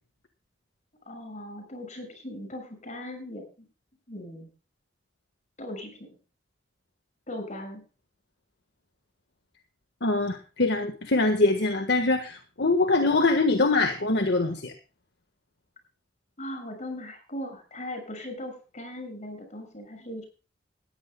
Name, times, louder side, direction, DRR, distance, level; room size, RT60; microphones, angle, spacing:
voice 1, 1.1-3.7 4.1-4.5 5.6-6.1 7.3-7.8 16.4-20.3, left 1 dB, 40° left, 5 dB, 6.5 m, -39 dB
voice 2, 10.0-14.7, left 2 dB, 65° left, 6 dB, 1.5 m, -23 dB
20.0 x 15.0 x 2.3 m, 0.34 s
head